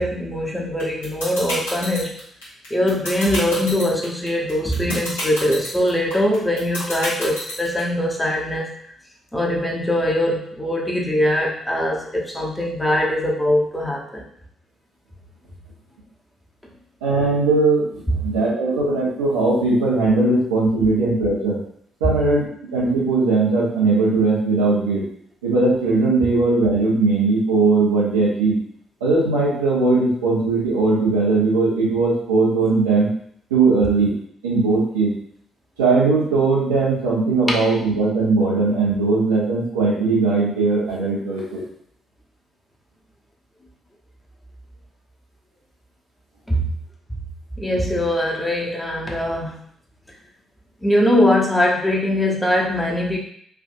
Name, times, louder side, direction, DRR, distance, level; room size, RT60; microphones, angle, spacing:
voice 1, 0.0-2.2 2.7-8.7 9.3-14.2 22.0-22.2 37.5-37.6 46.5-46.7 47.6-49.6 50.8-53.2, left 1 dB, 15° left, -2 dB, 0.9 m, -21 dB
sound 1, 0.8-7.8, left 1 dB, 85° left, 1.0 m, -28 dB
voice 2, 17.0-21.6 22.0-22.4 22.7-25.0 25.4-28.6 29.0-33.1 33.5-34.1 34.4-35.1 35.8-41.6, right 3 dB, 85° right, -7 dB, 0.9 m, -19 dB
3.5 x 2.5 x 2.6 m, 0.65 s
figure-of-eight pair, 40°, 0 cm